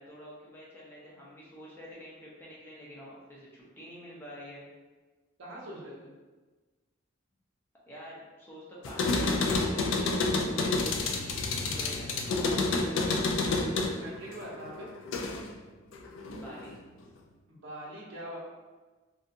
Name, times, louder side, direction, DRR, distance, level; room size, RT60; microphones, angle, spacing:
voice 1, 0.0-4.6 7.9-10.1 10.6-13.4 16.3-16.8, equal, 10° left, -6 dB, 0.5 m, -47 dB
voice 2, 5.4-6.1 14.0-14.9 17.5-18.4, right 1 dB, 75° right, -4 dB, 0.7 m, -43 dB
sound 1, 8.8-15.6 15.9-16.8, left 3 dB, 75° left, 0.3 m, -29 dB
2.6 x 2.3 x 2.5 m, 1.3 s
head